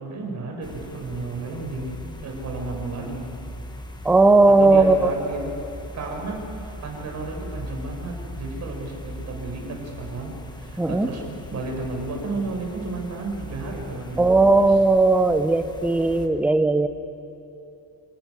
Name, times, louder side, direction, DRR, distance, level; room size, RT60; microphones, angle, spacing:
voice 1, 0.0-1.9 2.2-3.3 4.5-5.5 5.9-14.8, right 3 dB, 50° right, 1 dB, 5.2 m, -33 dB
sound 1, 0.6-16.3, equal, 10° left, 1.3 m, -39 dB
voice 2, 4.0-5.1 10.8-11.1 14.2-16.9, right 3 dB, 5° right, 9 dB, 0.7 m, -17 dB
26.0 x 15.0 x 10.0 m, 2.7 s
cardioid pair, 170°, 36 cm